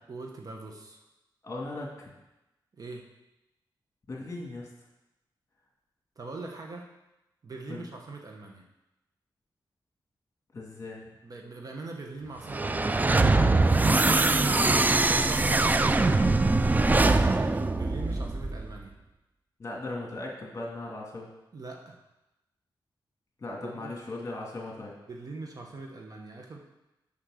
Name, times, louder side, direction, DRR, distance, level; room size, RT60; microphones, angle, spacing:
voice 1, 0.1-1.0 2.7-3.0 6.2-6.9 7.4-8.6 11.2-13.1 15.0-17.4 17.7-18.9 21.5-22.0 23.5-23.9 25.1-26.6, right 3 dB, 45° right, 1 dB, 1.2 m, -42 dB
voice 2, 1.4-2.1 4.1-4.7 7.7-7.9 10.5-11.1 13.8-14.9 19.6-21.3 23.4-25.0, left 2 dB, 35° left, -2 dB, 2.5 m, -38 dB
sound 1, 12.4-18.7, right 2 dB, 20° right, 0.4 m, -23 dB
6.5 x 5.7 x 6.4 m, 0.96 s
cardioid pair, 85°, 8 cm